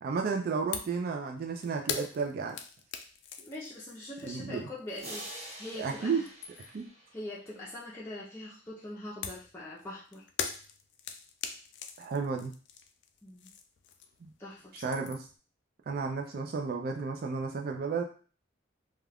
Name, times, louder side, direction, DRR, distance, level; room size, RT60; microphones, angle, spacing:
voice 1, 0.0-2.6 4.2-4.6 5.8-6.2 6.7-6.9 12.0-12.5 14.2-14.3 14.7-15.3 15.9-18.0, right 5 dB, 50° right, 3 dB, 0.3 m, -32 dB
sound 1, 0.7-1.0 1.3-5.8 6.1-6.9 9.2-14.3 14.6-15.4, left 7 dB, 65° left, 0.3 m, -41 dB
voice 2, 3.4-6.3 6.7-6.8 7.1-10.2 13.2-13.5 14.4-15.1, left 1 dB, 15° left, -8 dB, 0.5 m, -43 dB
sound 2, 5.0-7.7, right 1 dB, 35° right, 0.9 m, -46 dB
2.3 x 2.3 x 3.3 m, 0.39 s
head